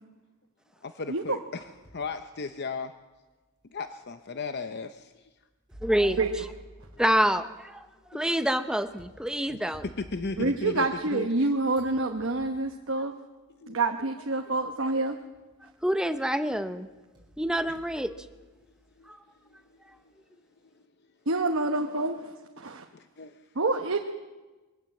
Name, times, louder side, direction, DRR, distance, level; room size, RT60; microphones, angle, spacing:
voice 1, 0.8-2.9 3.7-5.3 8.1-8.2 9.5-9.6 10.0-11.5 13.6-13.8 14.5-14.6 17.7-17.8 19.0-19.1 19.7-19.8 20.0-20.1 22.9-23.4, left 4 dB, 50° left, 9 dB, 0.7 m, -36 dB
sound 1, 1.3-2.1 2.7-2.8 3.7-3.8 5.7-11.4 11.7-12.8 13.9-14.0 14.5-15.0 15.3-16.1 16.5-18.9, equal, 20° right, 6.1 m, -50 dB
voice 2, 5.8-6.2 7.0-9.9 15.8-16.9 17.4-18.1 19.1-19.2, equal, 5° right, 9 dB, 0.8 m, -27 dB
voice 3, 10.4-13.1 13.7-15.2 21.3-22.3 22.6-22.8 23.5-24.0, right 2 dB, 60° right, 3 dB, 1.1 m, -27 dB
22.0 x 16.0 x 7.7 m, 1.2 s
head